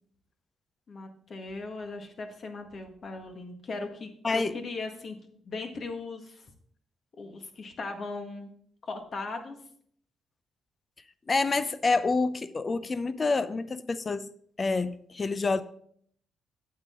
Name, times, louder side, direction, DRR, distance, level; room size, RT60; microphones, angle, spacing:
voice 1, 0.9-5.2 5.4-6.4 7.2-8.5 8.8-9.6, left 3 dB, 45° left, 1.5 m, -38 dB
voice 2, 4.2-4.5 11.3-14.3 14.6-15.6, left 3 dB, 30° left, 0.6 m, -27 dB
8.6 x 7.6 x 3.7 m
cardioid pair, 90°, 0 cm